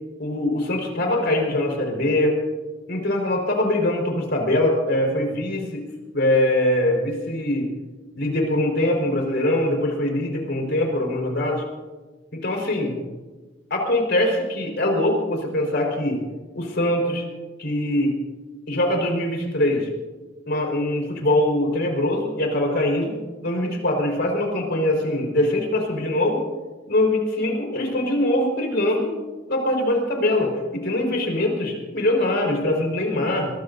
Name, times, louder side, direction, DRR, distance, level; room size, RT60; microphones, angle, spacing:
voice 1, 0.2-2.4 2.9-5.9 6.1-7.7 8.2-11.6 12.3-12.9 13.7-16.2 16.5-17.2 17.6-18.1 18.7-19.9 20.5-23.1 23.4-26.4 26.9-29.1 29.5-33.5, left 1 dB, 60° left, 1 dB, 4.7 m, -22 dB
23.5 x 21.5 x 2.7 m, 1.3 s
head